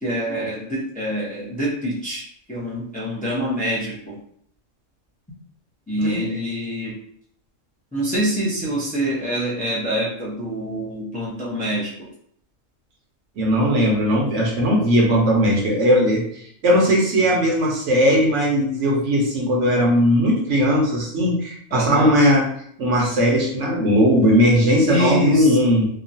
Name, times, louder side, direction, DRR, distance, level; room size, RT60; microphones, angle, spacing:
voice 1, 0.0-4.2 5.9-6.9 7.9-11.9 21.7-22.1 24.9-25.6, equal, 10° left, -7 dB, 0.5 m, -25 dB
voice 2, 13.4-22.5 22.8-25.9, equal, 65° right, -1 dB, 1.0 m, -18 dB
2.9 x 2.3 x 2.7 m, 0.65 s
omnidirectional pair, 1.4 m